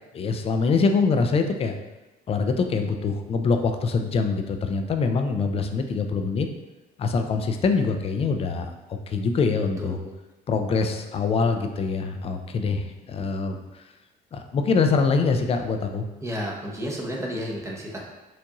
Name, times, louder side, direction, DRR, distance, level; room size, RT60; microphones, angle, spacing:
voice 1, 0.1-1.7 2.3-6.5 7.0-10.0 10.5-13.8 14.3-16.1, left 4 dB, 35° left, 6 dB, 0.4 m, -24 dB
voice 2, 9.8-10.2 16.2-18.0, equal, 15° right, -1 dB, 0.8 m, -32 dB
4.5 x 2.6 x 2.9 m, 1.1 s
cardioid pair, 110°, 17 cm